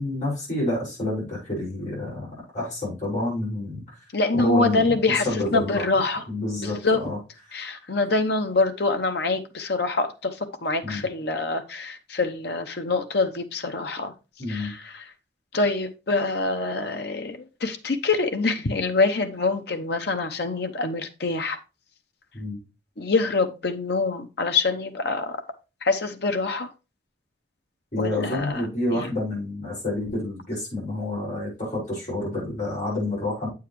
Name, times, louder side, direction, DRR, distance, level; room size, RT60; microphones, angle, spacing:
voice 1, 0.0-2.3 2.5-3.8 4.3-5.8 6.3-6.8 7.0-7.2 10.8-11.1 14.4-14.7 22.3-22.6 27.9-33.5, left 1 dB, 40° left, 5.6 m, -28 dB
voice 2, 4.1-6.2 6.6-7.0 7.5-14.1 14.5-15.1 15.5-21.6 23.0-25.4 25.8-26.7 28.0-29.1, left 3 dB, 60° left, 0.9 m, -25 dB
8.3 x 7.2 x 3.1 m
head